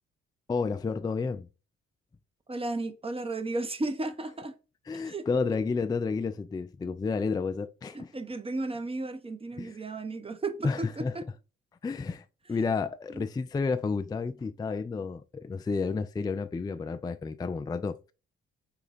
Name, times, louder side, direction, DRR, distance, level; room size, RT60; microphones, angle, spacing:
voice 1, 0.5-1.5 4.9-8.1 9.6-9.7 10.6-11.1 11.8-18.1, left 4 dB, 15° left, 0.4 m, -31 dB
voice 2, 2.5-4.5 4.9-5.3 7.9-11.3 13.1-13.3, right 2 dB, 20° right, 0.9 m, -34 dB
5.1 x 2.3 x 4.3 m
hypercardioid pair, 45°, 30 cm